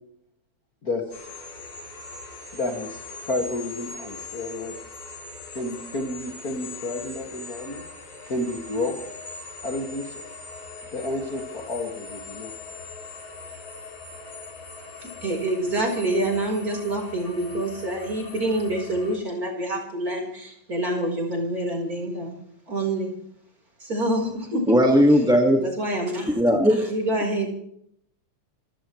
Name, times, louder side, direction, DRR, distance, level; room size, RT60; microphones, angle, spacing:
sound 1, 1.1-19.2, left 3 dB, 65° left, 5.2 m, -41 dB
voice 1, 2.5-4.8 5.6-7.8 8.3-9.0 9.6-10.2 10.9-12.5, left 2 dB, 30° left, 0 dB, 2.3 m, -30 dB
voice 2, 15.0-22.3 22.7-23.1 23.8-24.8 25.6-26.4 26.9-27.5, right 1 dB, 25° right, 0 dB, 4.7 m, -27 dB
voice 3, 24.7-25.6 26.3-26.9 27.1-27.2, equal, ahead, 2 dB, 1.0 m, -18 dB
26.5 x 16.5 x 3.2 m, 0.69 s
omnidirectional pair, 3.5 m